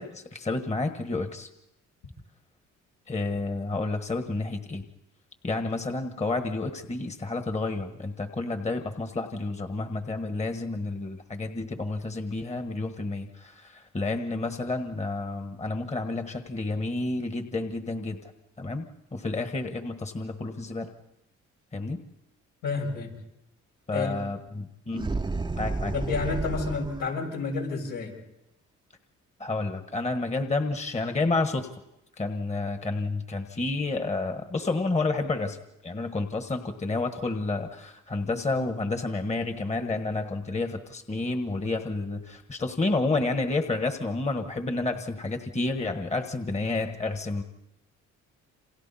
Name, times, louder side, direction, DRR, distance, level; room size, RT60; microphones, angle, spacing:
voice 1, 0.0-1.5 3.1-4.8 5.4-18.3 18.6-20.9 21.7-22.0 23.9-25.1 25.6-25.9 29.4-31.7 32.2-35.6 35.8-47.4, left 3 dB, 20° left, 6 dB, 1.4 m, -30 dB
voice 2, 22.6-23.1 23.9-24.2 25.9-28.2, left 4 dB, 85° left, -1 dB, 6.9 m, -30 dB
sound 1, 24.9-27.1, right 3 dB, 15° right, 0.8 m, -31 dB
29.0 x 26.5 x 4.3 m, 0.88 s
cardioid pair, 90°, 30 cm